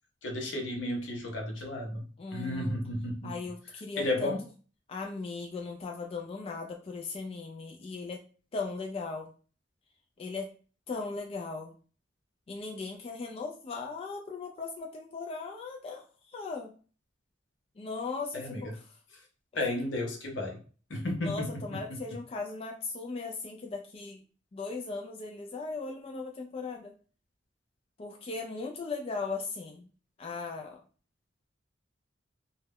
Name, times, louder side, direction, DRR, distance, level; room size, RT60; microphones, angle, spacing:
voice 1, 0.2-2.0 2.3-3.3 4.0-4.4 18.3-18.7 19.5-20.6 20.9-22.0, left 1 dB, 80° left, 0.7 m, -33 dB
voice 2, 2.2-2.8 3.2-4.3 4.9-8.2 8.5-9.3 10.2-10.5 10.9-11.8 12.5-16.7 17.8-18.8 21.2-24.2 24.5-26.9 28.0-29.9 30.2-30.8, left 4 dB, 30° left, 0.3 m, -38 dB
2.2 x 2.1 x 3.4 m
head